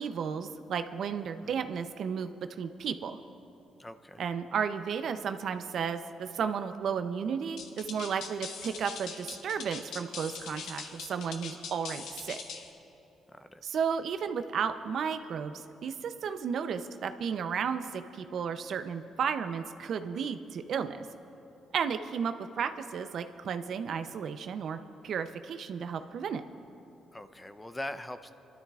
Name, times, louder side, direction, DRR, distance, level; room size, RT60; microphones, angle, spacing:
voice 1, 0.0-2.3 2.6-3.2 4.2-12.4 13.6-21.0 21.7-24.8 25.0-26.4, right 7 dB, 65° right, 9 dB, 0.6 m, -33 dB
voice 2, 3.8-4.2 13.3-13.6 27.1-28.3, left 1 dB, 15° left, 10 dB, 0.6 m, -42 dB
sound 1, 7.6-12.7, left 5 dB, 80° left, 1.2 m, -42 dB
28.0 x 12.5 x 2.4 m, 2.9 s
cardioid pair, 90°, 0 cm